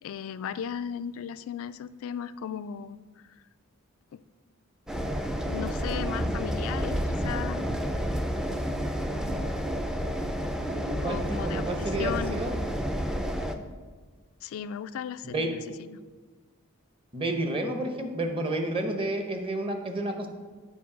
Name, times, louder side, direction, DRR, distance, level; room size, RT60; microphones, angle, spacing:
voice 1, 0.0-3.0 4.1-4.2 5.4-7.6 11.0-12.5 14.4-16.0, left 8 dB, 65° left, 14 dB, 0.3 m, -36 dB
sound 1, 4.9-13.6, equal, 5° right, 0.4 m, -30 dB
voice 2, 10.7-12.5 15.2-15.5 17.1-20.3, right 1 dB, 25° right, 4 dB, 0.9 m, -30 dB
8.3 x 4.5 x 5.9 m, 1.4 s
head